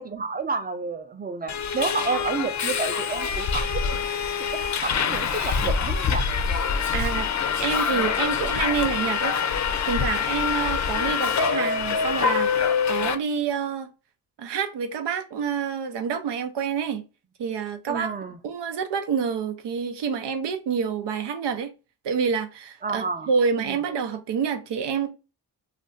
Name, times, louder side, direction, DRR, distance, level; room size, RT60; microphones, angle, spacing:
voice 1, 0.0-6.3 6.8-6.9 17.9-18.4 22.8-23.3 23.6-23.8, right 4 dB, 25° right, 0.5 m, -31 dB
Subway metro underground, 1.5-13.1, left 6 dB, 45° left, 0.5 m, -25 dB
voice 2, 6.9-7.3 7.6-13.9 14.4-17.0 17.4-18.1 18.4-21.7 22.0-25.1, right 6 dB, 85° right, 0.6 m, -28 dB
2.5 x 2.2 x 3.7 m
cardioid pair, 60°, 40 cm